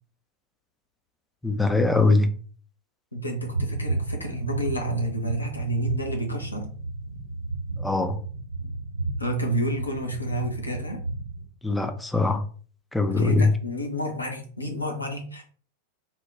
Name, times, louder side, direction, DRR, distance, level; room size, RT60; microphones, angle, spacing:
voice 1, 1.4-2.3 7.8-8.2 11.6-12.4 12.9-13.5, left 3 dB, 5° left, 0.4 m, -22 dB
voice 2, 3.1-6.6 9.2-11.0 13.1-15.4, right 1 dB, 85° left, 0.6 m, -30 dB
sound 1, 3.3-11.4, right 2 dB, 80° right, 0.8 m, -32 dB
3.8 x 2.1 x 2.2 m
figure-of-eight pair, 90°, 0 cm